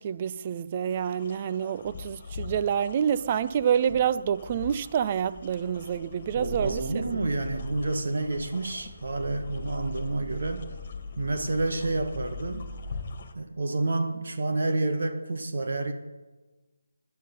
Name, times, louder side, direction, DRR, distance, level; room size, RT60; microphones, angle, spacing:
voice 1, 0.0-6.8, right 8 dB, 30° right, 0.5 m, -27 dB
sound 1, 0.9-13.3, left 4 dB, 35° left, 1.9 m, -45 dB
sound 2, 1.9-13.1, equal, 5° right, 3.2 m, -43 dB
voice 2, 6.2-10.7 11.2-12.7 13.3-15.9, right 2 dB, 55° right, 1.7 m, -29 dB
20.5 x 11.0 x 5.4 m
figure-of-eight pair, 155°, 0 cm